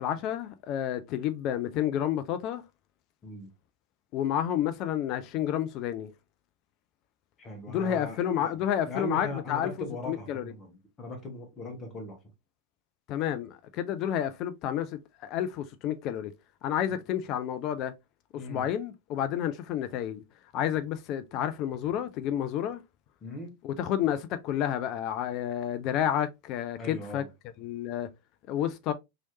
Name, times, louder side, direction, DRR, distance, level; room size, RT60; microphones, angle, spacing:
voice 1, 0.0-2.6 4.1-6.1 7.7-9.7 10.1-10.5 13.1-16.3 16.6-17.9 18.3-20.2 20.5-22.8 23.6-27.2 27.6-28.1 28.5-28.9, left 10 dB, 40° left, 0.3 m, -30 dB
voice 2, 7.4-8.6 8.8-12.2 16.9-17.0 18.3-18.7 23.2-23.5 26.8-27.3, left 1 dB, 20° left, 1.2 m, -39 dB
3.0 x 2.9 x 2.6 m
figure-of-eight pair, 90°, 0 cm